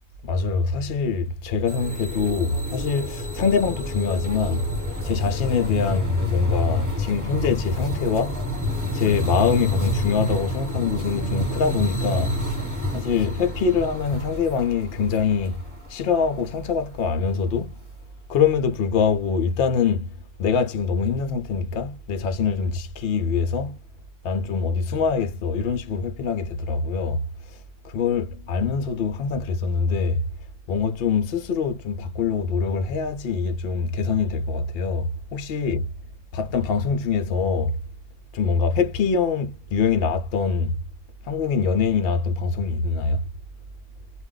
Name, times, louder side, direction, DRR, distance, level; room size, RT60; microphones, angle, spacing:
voice 1, 0.2-4.7 5.0-8.4 8.9-12.4 12.9-17.8 18.3-20.1 20.4-23.8 24.2-27.3 27.8-30.3 30.7-35.9 36.3-37.8 38.3-40.8 41.2-43.2, left 5 dB, 70° left, 0.5 m, -24 dB
sound 1, 1.7-17.0, left 1 dB, 15° right, 1.1 m, -29 dB
2.4 x 2.2 x 3.6 m
omnidirectional pair, 1.6 m